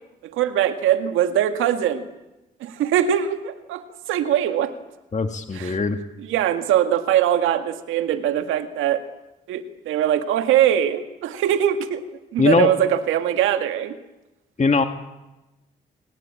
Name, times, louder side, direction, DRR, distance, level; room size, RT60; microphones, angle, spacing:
voice 1, 0.2-2.1 2.6-4.7 5.5-5.8 6.2-9.0 9.5-12.0 12.3-14.0, right 10 dB, 85° right, 8 dB, 1.8 m, -22 dB
voice 2, 5.1-6.0 12.4-12.7 14.6-14.8, left 4 dB, 35° left, 6 dB, 2.0 m, -20 dB
29.0 x 19.0 x 8.8 m, 1.0 s
supercardioid pair, 45°, 20 cm